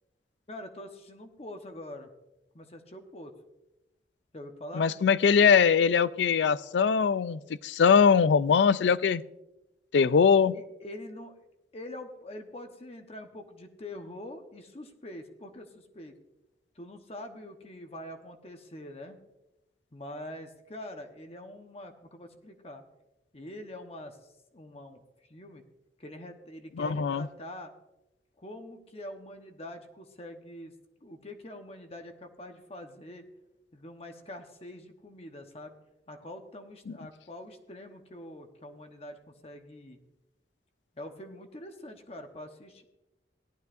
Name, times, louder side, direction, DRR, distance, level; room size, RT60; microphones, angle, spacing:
voice 1, 0.5-2.1 2.5-3.3 4.3-4.9 10.5-11.3 11.7-16.1 16.8-19.2 19.9-22.8 23.3-24.2 24.5-25.0 25.3-25.6 26.0-27.7 28.4-30.7 31.0-33.3 33.7-35.7 36.1-40.0 41.0-42.8, left 1 dB, 35° left, 5 dB, 1.0 m, -44 dB
voice 2, 4.7-9.2 9.9-10.5 26.8-27.3 36.9-37.0, left 6 dB, 75° left, 16 dB, 0.4 m, -22 dB
17.5 x 11.5 x 2.5 m, 0.95 s
head